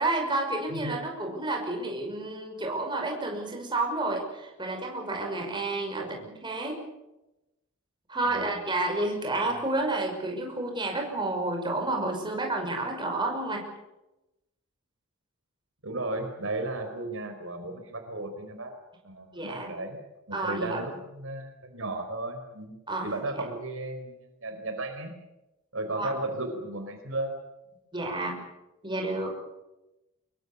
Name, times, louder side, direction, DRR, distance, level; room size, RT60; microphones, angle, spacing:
voice 1, 0.0-6.8 8.1-13.6 19.3-19.7 20.3-20.8 22.9-23.5 26.0-26.1 27.9-28.4 28.8-29.3, right 2 dB, 20° right, 2 dB, 5.9 m, -30 dB
voice 2, 15.8-18.7 19.0-20.0 20.3-22.7 23.0-25.1 25.7-27.3, right 2 dB, 60° right, 6 dB, 4.4 m, -35 dB
25.0 x 23.0 x 7.1 m, 0.95 s
head